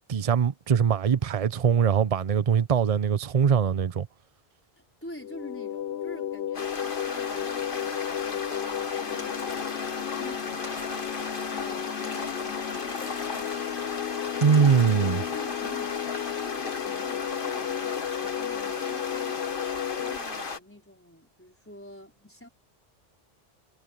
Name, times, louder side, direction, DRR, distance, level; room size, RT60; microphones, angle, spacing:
voice 1, 0.1-4.1 14.4-15.2, right 7 dB, 40° right, 0.7 m, -22 dB
voice 2, 4.8-10.9 11.4-14.1 14.6-19.5 20.0-22.5, left 1 dB, 10° left, 4.8 m, -47 dB
sound 1, 5.2-20.2, left 11 dB, 80° left, 1.0 m, -34 dB
sound 2, 6.5-20.6, left 4 dB, 55° left, 1.8 m, -35 dB
sound 3, 9.2-10.2 10.6-11.7 12.0-13.8 14.4-15.3, left 2 dB, 30° left, 1.7 m, -46 dB
omnidirectional pair, 1.1 m